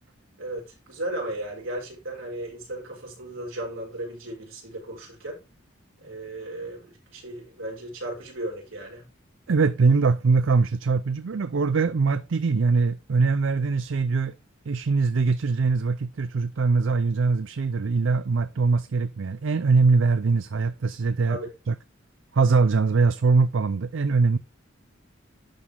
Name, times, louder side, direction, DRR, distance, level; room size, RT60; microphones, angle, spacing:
voice 1, 0.4-5.4 6.0-9.1 21.3-21.5, right 1 dB, 90° right, 5.1 m, -35 dB
voice 2, 9.5-14.3 14.7-21.4 21.7-21.8 22.3-24.4, right 4 dB, 75° right, 0.5 m, -22 dB
11.5 x 4.2 x 4.5 m
head